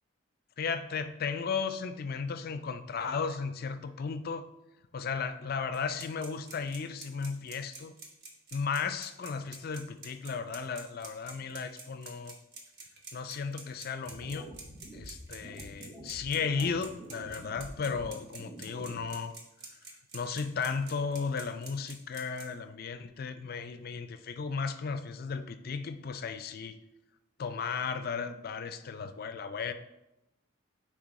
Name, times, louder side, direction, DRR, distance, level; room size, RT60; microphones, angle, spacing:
voice 1, 0.6-4.5 4.9-8.0 8.5-12.4 13.1-14.5 14.9-19.3 20.1-26.8 27.4-29.7, left 5 dB, 50° left, 10 dB, 0.4 m, -35 dB
sound 1, 5.7-22.4, right 4 dB, 55° right, 1.2 m, -47 dB
sound 2, 14.1-19.1, right 1 dB, 10° right, 0.6 m, -48 dB
9.7 x 3.3 x 4.1 m, 0.92 s
head